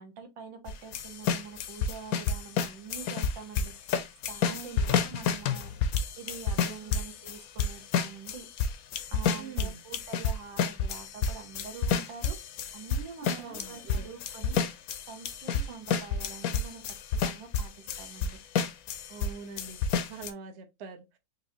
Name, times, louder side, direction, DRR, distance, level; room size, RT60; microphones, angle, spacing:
voice 1, 0.0-4.0 4.3-5.7 6.2-8.5 9.1-14.6 15.1-18.4, right 6 dB, 85° right, 1.6 m, -45 dB
sound 1, 0.7-19.3 19.6-20.3, left 6 dB, 70° left, 0.9 m, -30 dB
voice 2, 4.4-4.9 5.7-5.8 9.4-9.8 13.2-14.1 15.7-15.8 19.1-21.2, right 5 dB, 55° right, 0.8 m, -44 dB
4.4 x 2.7 x 2.8 m
omnidirectional pair, 2.0 m